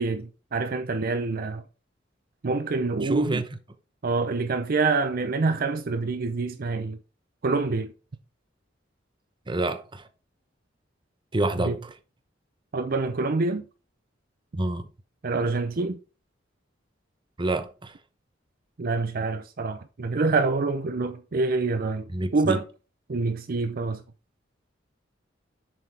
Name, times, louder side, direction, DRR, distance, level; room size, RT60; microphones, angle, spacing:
voice 1, 0.0-1.6 2.4-3.4 4.0-7.0 7.4-7.9 11.6-11.7 12.7-13.6 15.2-16.0 18.8-22.0 22.3-22.6 23.1-24.0, right 3 dB, 50° right, 0.6 m, -26 dB
voice 2, 3.0-3.6 9.5-10.1 11.3-11.9 14.5-14.9 17.4-18.0 22.1-22.6, right 2 dB, 25° right, 0.8 m, -28 dB
7.5 x 6.0 x 3.4 m
head